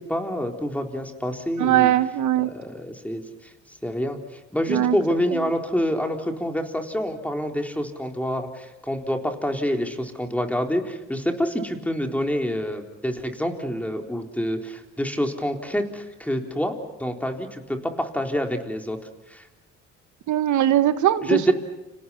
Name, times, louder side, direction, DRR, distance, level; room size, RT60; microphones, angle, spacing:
voice 1, 0.0-1.9 2.4-3.5 3.8-19.0 19.3-19.5 21.2-21.5, equal, 5° left, 3 dB, 3.9 m, -27 dB
voice 2, 1.6-2.5 4.7-5.0 20.3-21.4, right 12 dB, 75° right, 12 dB, 1.2 m, -20 dB
30.0 x 27.0 x 5.8 m, 1.0 s
cardioid pair, 90°, 30 cm